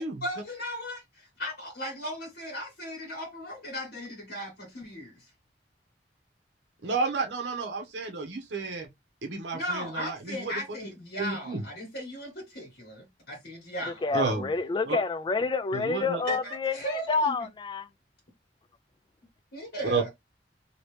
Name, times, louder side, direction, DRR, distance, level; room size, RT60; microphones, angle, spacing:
voice 1, 0.2-5.2 9.5-14.0 16.2-17.4 19.5-20.1, equal, 65° left, 1.4 m, -37 dB
voice 2, 6.8-8.9 9.2-10.5 11.2-11.6 14.1-14.5 14.8-15.0 15.7-16.4 19.9-20.0, right 4 dB, 85° right, 0.8 m, -31 dB
voice 3, 14.0-17.9, left 4 dB, 25° left, 0.3 m, -28 dB
2.9 x 2.8 x 3.2 m
head